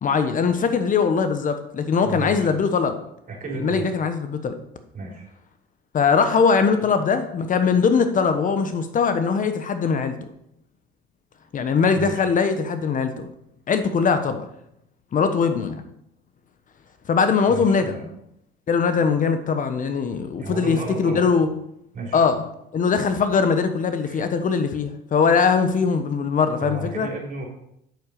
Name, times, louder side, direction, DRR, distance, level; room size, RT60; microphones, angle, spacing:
voice 1, 0.0-2.9 3.5-4.5 5.9-10.2 11.5-13.3 13.7-14.4 15.1-15.8 17.1-18.0 18.7-21.5 22.1-22.4 22.7-27.1, left 5 dB, 40° left, 9 dB, 1.1 m, -21 dB
voice 2, 2.0-2.7 3.3-3.8 4.9-5.3 12.0-12.3 17.5-18.0 20.4-21.3 21.9-22.2 24.0-24.3 26.6-27.5, right 3 dB, 40° right, 0 dB, 4.3 m, -33 dB
8.2 x 7.2 x 6.6 m, 0.77 s
supercardioid pair, 95°, 20 cm